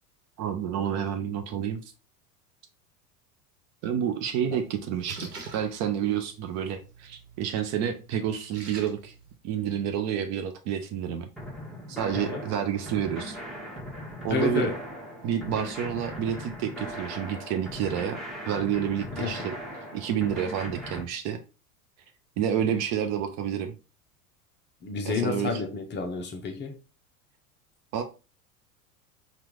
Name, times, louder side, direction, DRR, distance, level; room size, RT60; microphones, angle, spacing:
voice 1, 0.4-1.8 3.8-9.1 9.4-11.3 11.9-13.4 14.2-14.7 15.2-18.2 18.5-19.5 19.9-21.4 22.4-23.7 25.0-25.6 27.9-28.0, right 9 dB, 35° right, 0.6 m, -29 dB
Splash splatter, 4.3-9.4, right 3 dB, 85° right, 1.2 m, -46 dB
sound 1, 11.4-21.0, equal, ahead, 1.2 m, -39 dB
voice 2, 12.1-12.4 14.3-14.8 19.1-19.5 24.8-26.8, left 5 dB, 25° left, 0.7 m, -30 dB
4.4 x 2.5 x 3.6 m
figure-of-eight pair, 80°, 45 cm